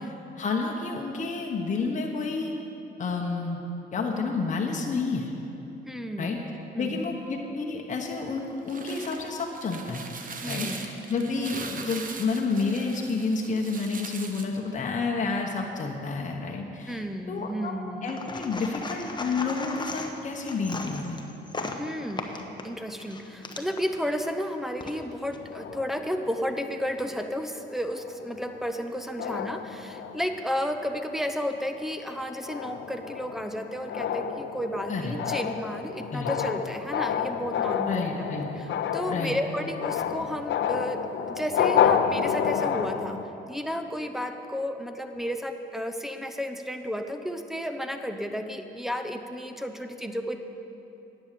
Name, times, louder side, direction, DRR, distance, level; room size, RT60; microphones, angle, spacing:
voice 1, 0.0-2.5 3.0-3.6 3.9-5.4 6.2-6.4 6.8-10.0 10.5-17.7 18.0-21.2 34.9-35.2 36.1-36.3 37.9-38.5 39.1-39.4, left 4 dB, 40° left, 0 dB, 1.1 m, -30 dB
voice 2, 5.8-6.5 6.7-7.1 10.4-10.8 16.9-18.1 21.8-22.4 22.6-38.3 38.6-41.0 41.3-43.2 43.5-50.4, equal, ahead, 5 dB, 0.8 m, -32 dB
sound 1, 8.4-14.6, right 4 dB, 45° right, 1.0 m, -40 dB
sound 2, 18.1-23.9 24.6-25.4, left 3 dB, 20° left, 1.0 m, -37 dB
sound 3, 25.4-27.2 27.9-28.1 28.4-28.8 29.2-30.5 30.9-31.2 31.7-43.2, left 8 dB, 65° left, 0.7 m, -29 dB
10.5 x 8.8 x 6.8 m, 3.0 s
cardioid pair, 90°, 20 cm